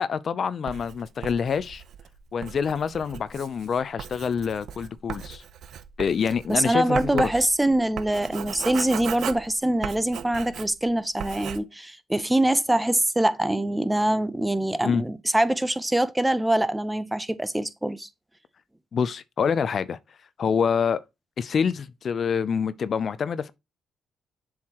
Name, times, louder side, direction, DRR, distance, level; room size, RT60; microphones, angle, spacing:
voice 1, 0.0-1.8 2.3-5.4 6.0-7.3 14.8-15.0 18.9-20.0 20.4-21.0 21.4-23.5, left 6 dB, 50° left, 0.5 m, -26 dB
Writing, 0.7-10.9 11.2-11.6, right 9 dB, 70° right, 0.6 m, -37 dB
voice 2, 6.5-18.1, right 1 dB, 10° right, 0.6 m, -24 dB
7.2 x 4.7 x 2.9 m
cardioid pair, 90°, 0 cm